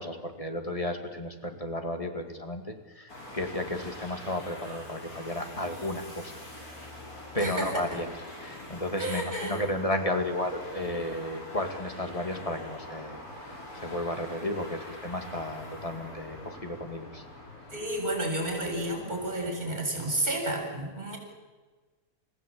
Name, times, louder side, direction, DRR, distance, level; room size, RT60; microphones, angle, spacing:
voice 1, 0.0-6.3 7.3-8.1 8.4-13.2 13.5-17.2, left 1 dB, 25° left, 4 dB, 2.4 m, -33 dB
sound 1, 3.1-19.4, left 1 dB, 85° left, 6.0 m, -44 dB
voice 2, 7.3-8.0 9.0-9.6 17.7-21.2, right 1 dB, 30° right, 3 dB, 7.7 m, -31 dB
29.5 x 16.0 x 8.7 m, 1.3 s
omnidirectional pair, 1.5 m